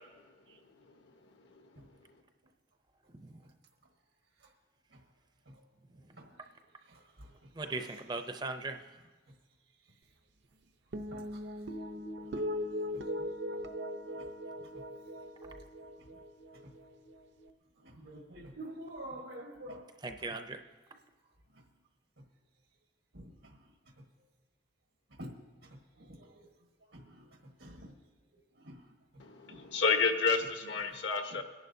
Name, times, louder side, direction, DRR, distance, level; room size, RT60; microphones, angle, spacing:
voice 1, 6.2-6.5 6.8-8.3 11.1-11.6 12.2-12.5 12.8-13.3 14.0-14.3 15.4-15.5 16.0-16.1 16.6-16.7 17.8-19.9 21.5-21.6 23.1-23.7 25.1-25.4 25.6-26.5 26.9-27.9 28.3-28.9 29.5-29.6 30.3-31.0 31.3-31.4, right 1 dB, 85° right, 1 dB, 1.4 m, -50 dB
voice 2, 7.5-8.8 20.0-20.6, right 3 dB, 25° right, 7 dB, 0.5 m, -38 dB
sound 1, 10.9-17.5, equal, 70° right, 0.7 m, -40 dB
voice 3, 29.2-31.4, left 5 dB, 75° left, 4 dB, 1.2 m, -30 dB
23.0 x 11.0 x 2.7 m, 1.3 s
head